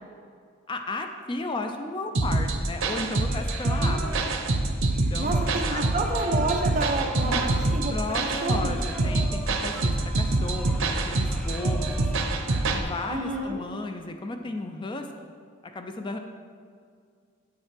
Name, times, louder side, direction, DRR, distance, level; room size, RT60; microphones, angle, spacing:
voice 1, 0.7-4.4 4.9-5.8 7.2-7.4 7.9-12.3 12.7-15.1 15.7-16.2, left 2 dB, 25° left, 5 dB, 0.4 m, -34 dB
sound 1, 2.1-12.8, right 2 dB, 90° right, 0.7 m, -26 dB
Singing, 3.2-13.4, equal, ahead, 0.8 m, -41 dB
voice 2, 5.2-7.9 8.2-8.7 13.1-13.6, right 2 dB, 40° right, 3 dB, 0.7 m, -29 dB
8.6 x 7.1 x 3.3 m, 2.2 s
head